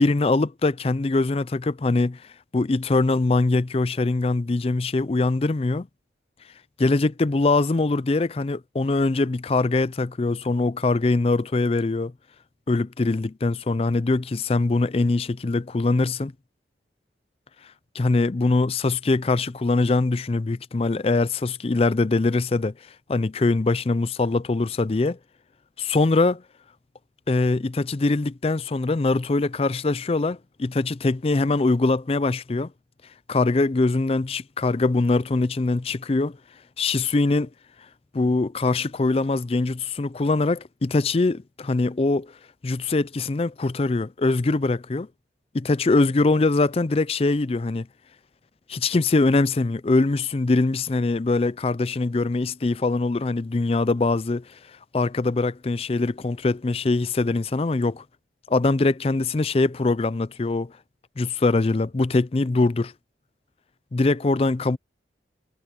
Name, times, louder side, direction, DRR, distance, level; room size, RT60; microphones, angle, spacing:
voice 1, 0.0-2.2 2.5-5.9 6.8-12.1 12.7-16.3 17.9-22.7 23.1-25.2 25.8-26.4 27.3-32.7 33.3-36.4 36.8-37.5 38.1-42.3 42.6-45.1 45.5-47.9 48.7-54.4 54.9-58.0 58.5-60.7 61.2-62.9 63.9-64.8, left 3 dB, 35° left, 0.4 m, -22 dB
head